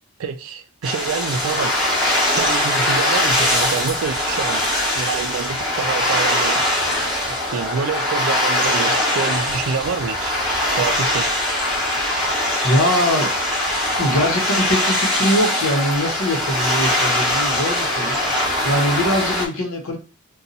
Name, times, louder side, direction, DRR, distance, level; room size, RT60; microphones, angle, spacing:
voice 1, 0.2-1.8 2.3-4.6 4.9-6.6 7.3-10.4 10.8-11.3, right 5 dB, 75° right, 0.4 m, -27 dB
sound 1, 0.8-19.5, left 1 dB, ahead, 1.0 m, -21 dB
voice 2, 12.6-13.3 14.0-20.0, equal, 70° left, 1.0 m, -22 dB
2.6 x 2.3 x 3.9 m
head